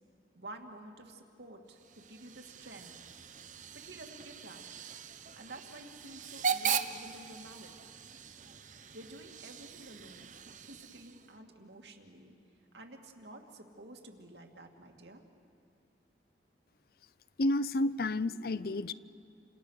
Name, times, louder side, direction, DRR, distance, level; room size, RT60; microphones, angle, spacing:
voice 1, 0.3-2.9 3.7-4.6 5.4-7.7 8.9-10.3 10.6-12.3 12.7-15.2, right 1 dB, 75° right, 3 dB, 2.5 m, -50 dB
Hiss / Train / Alarm, 1.7-11.4, right 7 dB, 45° right, 0.9 m, -40 dB
voice 2, 17.4-18.9, left 2 dB, 55° left, 17 dB, 0.5 m, -30 dB
29.5 x 26.5 x 6.6 m, 2.6 s
head